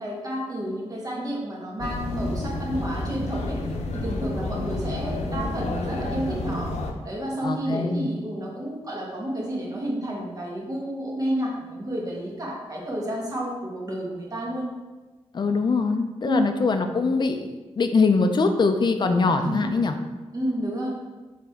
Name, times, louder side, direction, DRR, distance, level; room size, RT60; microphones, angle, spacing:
voice 1, 0.0-3.6 3.9-6.7 7.0-14.6 16.2-16.5 19.4-19.7 20.3-20.9, right 1 dB, 35° right, -3 dB, 1.5 m, -30 dB
sound 1, 1.8-6.9, left 2 dB, 85° left, 0.7 m, -30 dB
voice 2, 7.4-8.1 15.3-17.5 17.8-19.9, left 4 dB, 45° left, 6 dB, 0.5 m, -22 dB
7.5 x 3.9 x 3.6 m, 1.2 s
wide cardioid pair, 160°, 11 cm